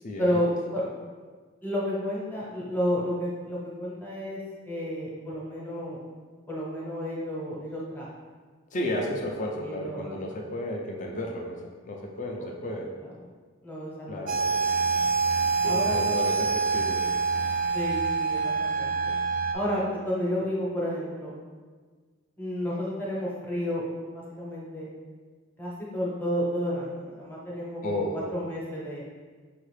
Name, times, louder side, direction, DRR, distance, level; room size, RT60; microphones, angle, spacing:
voice 1, 0.2-0.8 1.6-4.4 4.7-6.0 6.5-8.1 9.6-10.3 12.4-13.3 13.6-14.6 15.6-16.0 17.7-19.1 19.5-21.3 22.4-23.8 24.1-24.9 25.6-29.0, equal, 10° left, -5 dB, 0.8 m, -31 dB
voice 2, 8.7-11.5 11.8-12.8 14.1-14.6 14.8-15.0 15.6-17.0 27.8-28.2, left 1 dB, 40° left, 0 dB, 0.4 m, -33 dB
sound 1, 14.3-19.5, right 4 dB, 45° right, 0.3 m, -26 dB
5.4 x 2.4 x 3.2 m, 1.5 s
head